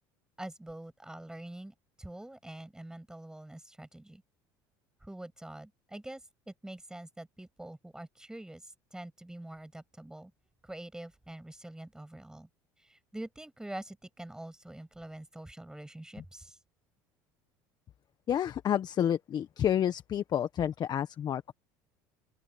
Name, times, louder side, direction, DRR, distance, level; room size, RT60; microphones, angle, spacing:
voice 1, 0.4-4.2 5.0-10.3 10.6-12.5 12.8-16.6, right 1 dB, 5° right, 6.9 m, -45 dB
voice 2, 18.3-21.5, left 10 dB, 45° left, 1.4 m, -29 dB
open air
supercardioid pair, 95°, 10 cm